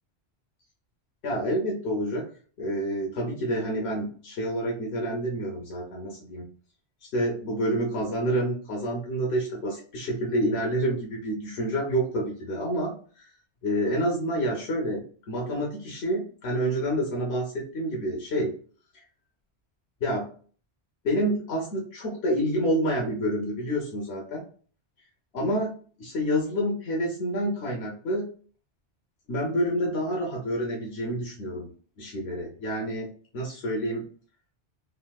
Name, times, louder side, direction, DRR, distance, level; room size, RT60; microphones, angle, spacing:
voice 1, 1.2-2.2 2.6-6.5 7.0-13.3 13.6-18.5 18.9-19.0 20.0-20.3 21.0-24.4 25.3-25.7 26.0-28.3 29.3-31.7 32.0-33.1 33.3-34.0, equal, 90° left, -1 dB, 1.0 m, -28 dB
3.2 x 2.6 x 2.3 m, 0.43 s
omnidirectional pair, 1.1 m